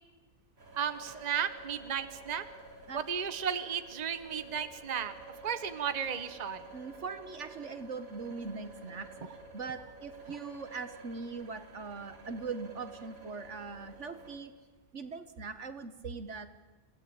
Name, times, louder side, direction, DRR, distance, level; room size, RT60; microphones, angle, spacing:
sound 1, 0.6-14.4, right 3 dB, 90° right, 4.5 m, -51 dB
voice 1, 0.7-2.4 2.9-5.1 5.4-6.6 10.3-10.4, right 7 dB, 35° right, 10 dB, 1.1 m, -34 dB
voice 2, 6.7-9.1 9.5-14.5 14.9-16.6, right 4 dB, 60° right, 11 dB, 1.6 m, -41 dB
28.0 x 17.5 x 8.8 m, 1.2 s
omnidirectional pair, 1.4 m